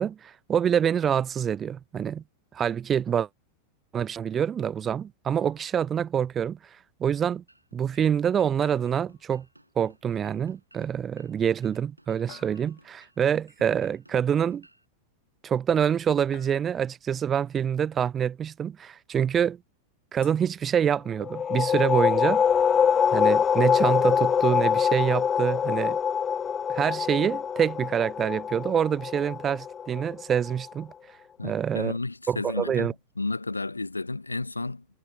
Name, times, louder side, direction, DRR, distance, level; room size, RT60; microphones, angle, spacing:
voice 1, 0.0-2.2 2.5-3.3 3.9-6.6 7.0-7.4 7.7-9.5 9.8-14.7 15.4-19.6 20.1-22.4 23.1-26.0 26.7-30.9 31.4-31.9 32.3-32.9, right 8 dB, 25° right, 0.6 m, -26 dB
sound 1, 5.4-6.0 8.6-9.9 12.3-13.2 16.3-17.1 20.2-21.2, left 24 dB, 50° left, 2.8 m, -54 dB
sound 2, 7.5-14.8, right 1 dB, 85° right, 7.7 m, -58 dB
sound 3, 21.2-30.6, left 7 dB, 20° left, 0.4 m, -24 dB
voice 2, 31.4-34.8, left 3 dB, 80° left, 1.0 m, -32 dB
figure-of-eight pair, 90°, 0 cm